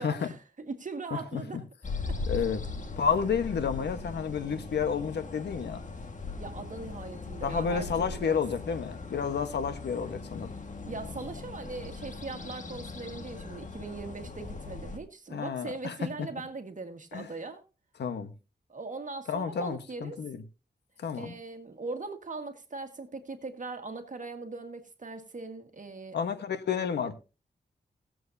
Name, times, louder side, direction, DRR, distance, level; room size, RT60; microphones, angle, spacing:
voice 1, 0.0-1.6 2.1-2.2 6.4-8.4 10.8-17.6 18.7-20.2 21.1-26.2, right 3 dB, 50° right, 1.8 m, -40 dB
sound 1, 1.8-15.0, left 4 dB, 45° left, 1.7 m, -39 dB
voice 2, 2.3-2.6 3.0-5.8 7.4-10.5 15.3-16.3 17.1-17.3 18.0-18.3 19.3-20.4 21.0-21.4 26.1-27.2, left 6 dB, 85° left, 1.2 m, -30 dB
20.0 x 7.7 x 2.7 m
cardioid pair, 60°, 17 cm